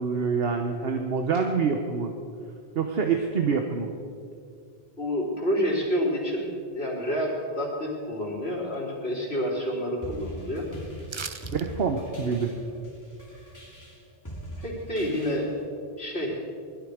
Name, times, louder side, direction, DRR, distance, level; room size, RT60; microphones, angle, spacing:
voice 1, 0.0-2.1 2.7-3.9 11.5-12.5, right 5 dB, 65° right, 4 dB, 1.2 m, -26 dB
voice 2, 5.0-10.6 14.6-15.5 16.0-16.4, equal, 70° left, -4 dB, 4.0 m, -28 dB
sound 1, 10.0-15.7, equal, 15° left, 2.7 m, -41 dB
sound 2, 11.1-11.7 12.0-12.1, right 5 dB, 35° right, 0.5 m, -37 dB
21.0 x 13.0 x 5.0 m, 2.3 s
omnidirectional pair, 1.1 m